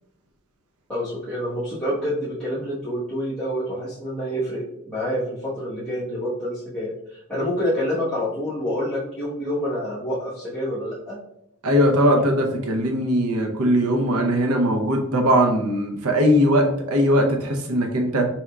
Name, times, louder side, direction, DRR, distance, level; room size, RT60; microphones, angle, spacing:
voice 1, 0.9-11.2, equal, 5° left, -14 dB, 1.1 m, -27 dB
voice 2, 11.6-18.3, equal, 85° right, 3 dB, 0.6 m, -20 dB
4.2 x 3.6 x 2.3 m, 0.81 s
head